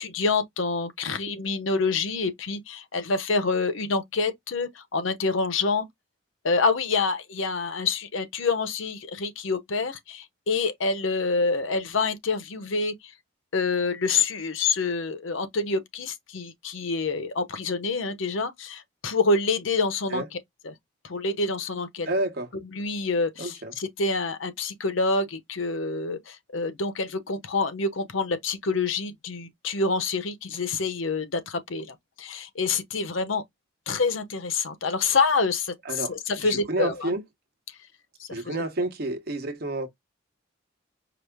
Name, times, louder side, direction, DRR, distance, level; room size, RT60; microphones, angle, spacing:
voice 1, 0.0-5.9 6.4-12.9 13.5-20.2 20.6-20.7 21.0-22.1 22.7-33.4 33.9-37.1 38.2-38.6, left 4 dB, 85° left, 0.8 m, -27 dB
voice 2, 22.1-22.5 23.4-23.7 35.8-37.2 38.3-39.9, right 1 dB, 50° right, 1.0 m, -29 dB
4.8 x 2.0 x 3.4 m
head